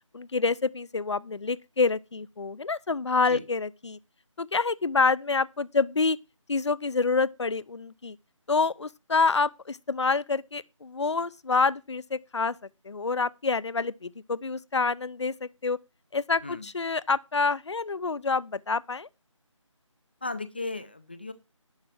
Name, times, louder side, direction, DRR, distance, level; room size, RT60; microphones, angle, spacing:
voice 1, 0.1-4.0 4.4-6.2 6.5-8.1 8.5-12.5 12.9-15.8 16.1-19.1, left 4 dB, 60° left, 0.7 m, -27 dB
voice 2, 20.2-21.3, left 2 dB, 20° left, 0.5 m, -36 dB
11.5 x 6.1 x 7.4 m
figure-of-eight pair, 165°, 17 cm